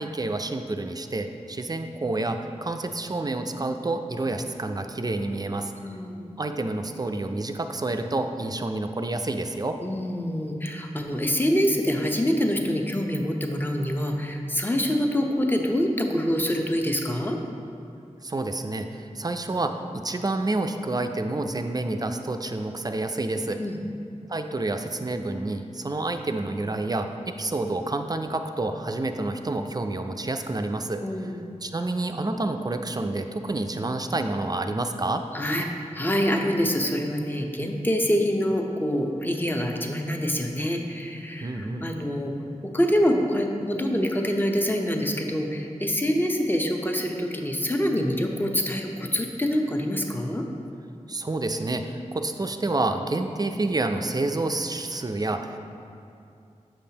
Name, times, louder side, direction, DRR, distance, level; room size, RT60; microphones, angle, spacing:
voice 1, 0.0-5.7 6.4-9.8 18.2-23.6 24.3-31.3 31.6-35.2 41.4-41.9 51.1-55.6, right 2 dB, 30° right, 6 dB, 0.4 m, -29 dB
voice 2, 5.8-6.3 9.8-17.4 23.6-23.8 31.0-31.5 35.3-35.7 35.9-42.3 42.7-50.4, equal, 15° left, 2 dB, 0.7 m, -25 dB
7.1 x 5.4 x 2.8 m, 2.6 s
cardioid pair, 40°, 13 cm